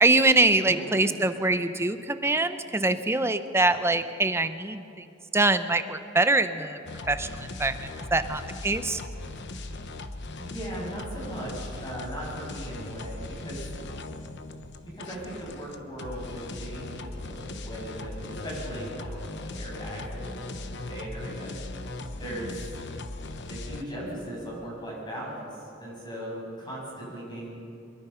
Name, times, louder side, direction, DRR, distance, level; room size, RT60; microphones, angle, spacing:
voice 1, 0.0-4.8 5.3-6.8 7.1-9.0, right 2 dB, 15° right, 10 dB, 0.7 m, -24 dB
voice 2, 0.6-1.0 10.4-13.6 13.9-14.0 14.8-21.5 22.2-22.7 23.5-27.6, right 1 dB, 20° left, -4 dB, 7.5 m, -38 dB
sound 1, 6.9-23.8, left 2 dB, 60° left, 1.1 m, -39 dB
23.5 x 22.0 x 5.7 m, 2.7 s
head